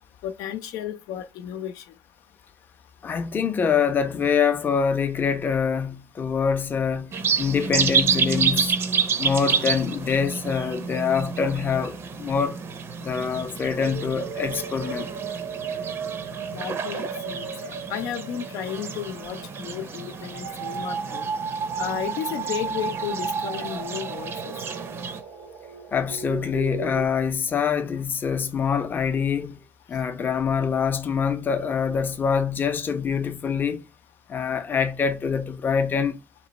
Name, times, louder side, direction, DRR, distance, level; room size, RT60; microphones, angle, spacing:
voice 1, 0.2-1.8 16.5-21.3 21.8-24.5, left 10 dB, 80° left, 0.5 m, -33 dB
voice 2, 3.0-7.1 7.4-8.8 9.2-12.6 13.0-15.1 25.9-29.6 29.9-33.9 34.3-36.2, left 6 dB, 30° left, 0.6 m, -25 dB
sound 1, 7.1-25.2, right 6 dB, 45° right, 0.6 m, -29 dB
sound 2, 13.8-27.1, right 6 dB, 90° right, 0.8 m, -34 dB
3.0 x 3.0 x 4.1 m
cardioid pair, 115°, 6 cm